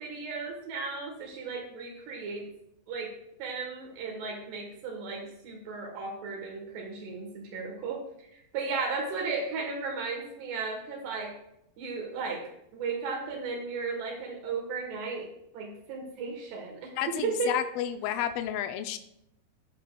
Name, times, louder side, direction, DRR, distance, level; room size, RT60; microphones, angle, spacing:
voice 1, 0.0-2.5 2.9-3.1 3.4-8.0 8.5-11.3 11.8-12.4 12.7-15.3 15.5-16.9 17.2-17.6, right 4 dB, 80° right, -1 dB, 3.4 m, -35 dB
voice 2, 17.0-19.0, left 10 dB, 80° left, 8 dB, 2.2 m, -31 dB
17.0 x 5.9 x 2.3 m, 0.78 s
omnidirectional pair, 4.7 m